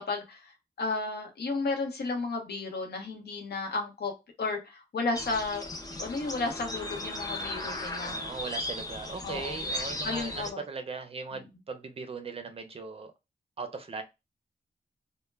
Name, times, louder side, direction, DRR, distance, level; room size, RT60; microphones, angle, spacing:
voice 1, 0.0-4.1 4.4-5.6 6.0-8.2 9.2-9.6 10.0-10.6, left 3 dB, 85° left, 2 dB, 0.8 m, -33 dB
sound 1, 5.1-10.5, left 1 dB, 25° left, 0.5 m, -36 dB
voice 2, 8.0-13.1 13.6-14.0, right 4 dB, 35° right, 7 dB, 0.5 m, -39 dB
2.1 x 2.1 x 3.1 m, 0.24 s
wide cardioid pair, 115°, 17 cm